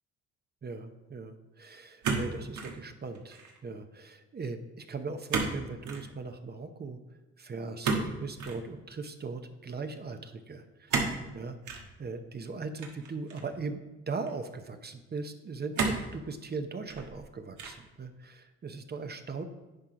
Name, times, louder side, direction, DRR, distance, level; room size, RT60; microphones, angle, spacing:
voice 1, 0.6-7.0 7.4-11.0 11.3-11.6 12.0-19.4, right 4 dB, 35° right, 7 dB, 0.8 m, -39 dB
sound 1, 2.0-2.8 3.1-3.6 5.3-5.6 5.8-6.1 7.8-8.6 10.9-11.2 11.6-11.9 12.8-13.6 14.3-14.4 15.7-16.1 16.7-17.2 17.6-17.9, right 4 dB, 80° right, 1.4 m, -31 dB
10.0 x 4.4 x 5.0 m, 1.1 s
cardioid pair, 90°, 30 cm